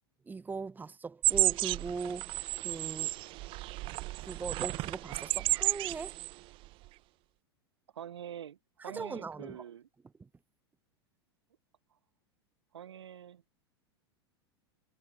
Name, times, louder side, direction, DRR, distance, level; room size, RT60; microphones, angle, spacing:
voice 1, 0.3-3.1 4.2-6.2 8.8-9.6 10.2-10.3, right 4 dB, 15° right, 0.8 m, -40 dB
sound 1, 1.2-6.4 6.6-6.9, right 20 dB, 40° right, 0.4 m, -32 dB
voice 2, 7.9-9.9 12.7-13.4, right 9 dB, 80° right, 0.8 m, -45 dB
hypercardioid pair, 90°, 14 cm